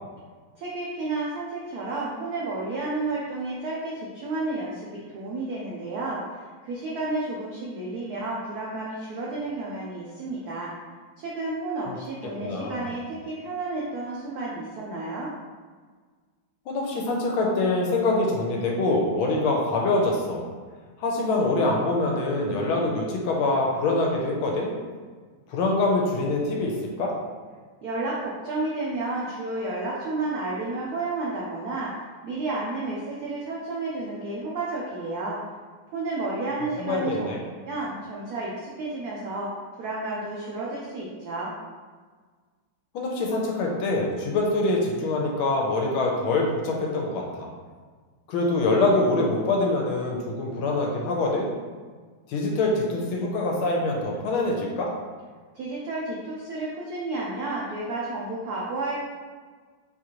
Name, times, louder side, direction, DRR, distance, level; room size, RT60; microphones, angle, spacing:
voice 1, 0.6-4.9 5.1-10.7 11.2-15.3 27.8-31.9 32.2-35.4 35.9-37.3 37.6-39.5 39.8-41.5 55.5-58.9, right 2 dB, 90° right, -5 dB, 0.8 m, -31 dB
voice 2, 12.4-12.9 16.7-20.4 21.0-24.7 25.5-27.1 36.8-37.4 42.9-47.5 48.3-51.5 52.3-54.9, left 2 dB, 85° left, -1 dB, 1.5 m, -24 dB
4.4 x 2.5 x 2.9 m, 1.5 s
omnidirectional pair, 2.3 m